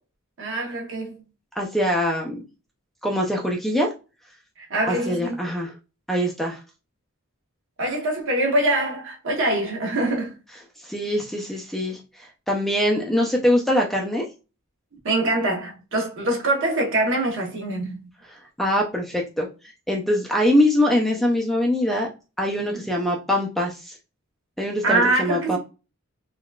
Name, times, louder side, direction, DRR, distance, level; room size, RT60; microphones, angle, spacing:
voice 1, 0.4-1.2 4.6-5.4 7.8-10.4 15.0-18.1 22.6-22.8 24.8-25.6, right 2 dB, 60° right, 1.0 m, -24 dB
voice 2, 1.6-2.4 3.0-3.9 4.9-5.7 6.1-6.6 10.8-14.3 18.3-19.5 19.9-22.1 22.4-24.0 24.6-25.6, left 1 dB, ahead, 0.4 m, -23 dB
3.7 x 2.3 x 2.3 m
head